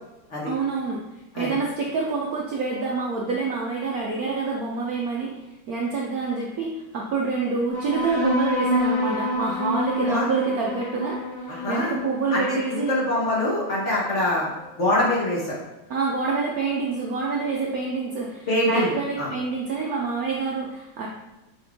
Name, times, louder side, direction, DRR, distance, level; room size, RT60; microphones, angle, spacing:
voice 1, 0.4-1.0 1.4-5.3 5.7-13.0 15.9-21.1, right 4 dB, 65° right, -2 dB, 0.9 m, -27 dB
sound 1, 7.7-14.7, left 1 dB, 70° left, 2.4 m, -28 dB
voice 2, 11.5-12.0 12.3-14.5 14.8-15.5 18.5-18.9 19.2-19.3, left 1 dB, 40° left, -4 dB, 1.3 m, -24 dB
6.1 x 4.6 x 3.6 m, 0.98 s
omnidirectional pair, 2.3 m